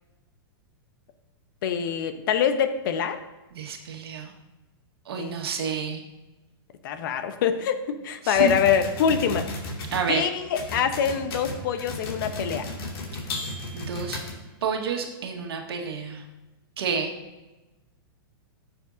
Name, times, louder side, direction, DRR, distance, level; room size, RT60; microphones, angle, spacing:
voice 1, 1.6-3.2 5.2-5.4 6.8-9.5 10.1-12.7, left 7 dB, 60° left, 9 dB, 1.0 m, -25 dB
voice 2, 3.5-4.3 5.1-6.0 8.2-8.6 9.9-10.3 13.7-14.2 14.6-16.2 16.8-17.1, right 5 dB, 85° right, 3 dB, 1.6 m, -29 dB
sound 1, 8.4-10.1 10.6-14.7, left 2 dB, 75° left, 2.5 m, -34 dB
15.0 x 7.2 x 2.7 m, 1.1 s
hypercardioid pair, 145°, 13 cm